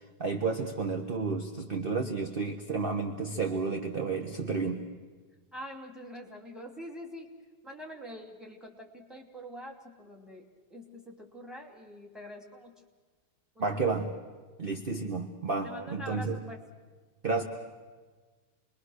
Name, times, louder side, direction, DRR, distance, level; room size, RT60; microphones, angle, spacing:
voice 1, 0.2-4.8 13.6-14.1 14.6-16.4 17.2-17.4, right 4 dB, 30° right, 4 dB, 1.3 m, -31 dB
voice 2, 5.5-7.3 7.6-10.4 10.7-12.7 13.5-13.8 15.6-16.6, equal, ahead, 2 dB, 2.7 m, -45 dB
28.5 x 22.0 x 6.5 m, 1.4 s
omnidirectional pair, 2.3 m